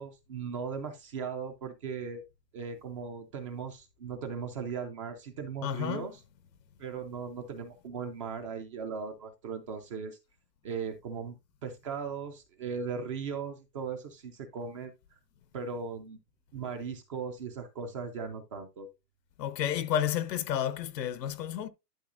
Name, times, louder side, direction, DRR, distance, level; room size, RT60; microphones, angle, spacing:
voice 1, 0.0-2.2 2.5-6.2 6.8-10.2 10.6-11.4 11.6-15.2 15.5-16.2 16.5-18.9, right 6 dB, 20° right, 0.4 m, -38 dB
voice 2, 5.6-6.1 19.4-21.7, left 10 dB, 85° left, 1.0 m, -31 dB
11.5 x 5.8 x 2.5 m
hypercardioid pair, 145°, 48 cm